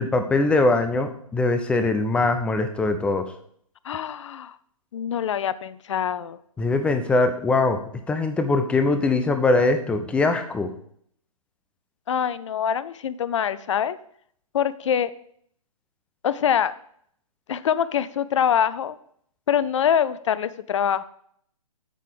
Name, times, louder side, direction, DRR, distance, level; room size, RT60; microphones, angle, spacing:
voice 1, 0.0-3.2 6.6-7.8 8.1-10.7, left 3 dB, 5° left, 8 dB, 0.5 m, -22 dB
voice 2, 3.8-4.5 4.9-6.4 12.1-14.0 14.5-15.1 16.2-16.7 17.5-19.0 19.5-21.0, left 8 dB, 55° left, 16 dB, 0.5 m, -24 dB
8.4 x 3.7 x 6.6 m, 0.65 s
hypercardioid pair, 135°, 19 cm